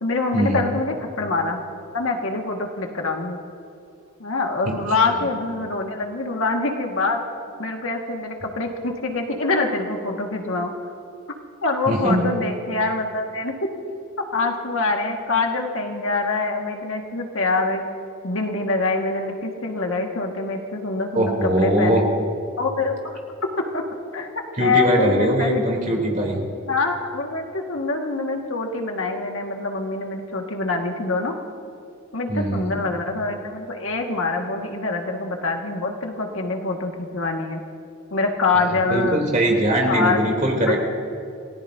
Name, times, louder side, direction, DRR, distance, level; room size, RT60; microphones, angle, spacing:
voice 1, 0.0-1.6 1.9-3.4 4.2-7.2 7.6-10.7 11.6-13.5 14.3-17.9 18.2-22.1 22.6-23.2 23.6-23.8 24.1-25.6 26.7-31.3 32.1-37.6 38.1-39.3 39.9-40.3 40.7-40.8, left 3 dB, 70° left, 2 dB, 1.8 m, -25 dB
voice 2, 11.9-12.3 21.1-22.0 24.6-26.4 32.3-32.8 38.9-40.8, right 1 dB, 35° right, -1 dB, 3.3 m, -21 dB
29.0 x 18.0 x 2.7 m, 2.6 s
head